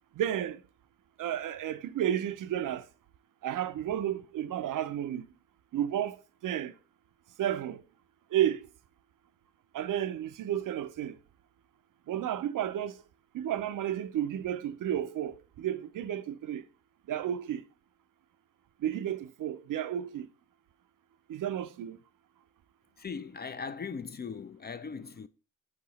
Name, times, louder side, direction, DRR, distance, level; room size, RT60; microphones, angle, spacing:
voice 1, 0.1-0.6 1.2-2.9 3.4-5.3 5.7-6.7 7.4-7.8 8.3-8.7 9.7-11.2 12.1-13.0 13.3-16.7 17.1-17.6 18.8-20.3 21.3-22.0, right 11 dB, 65° right, 0.5 m, -32 dB
voice 2, 23.0-25.3, left 5 dB, 30° left, 0.4 m, -39 dB
4.6 x 2.9 x 3.9 m
supercardioid pair, 45°, 35 cm